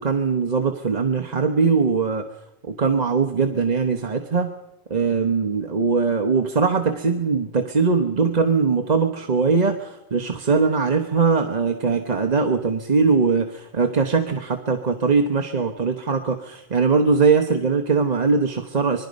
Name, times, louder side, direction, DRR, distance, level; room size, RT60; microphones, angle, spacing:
voice 1, 0.0-2.3 2.7-4.5 4.9-19.1, right 5 dB, 35° right, 4 dB, 1.0 m, -21 dB
25.5 x 21.0 x 5.3 m, 0.90 s
omnidirectional pair, 1.3 m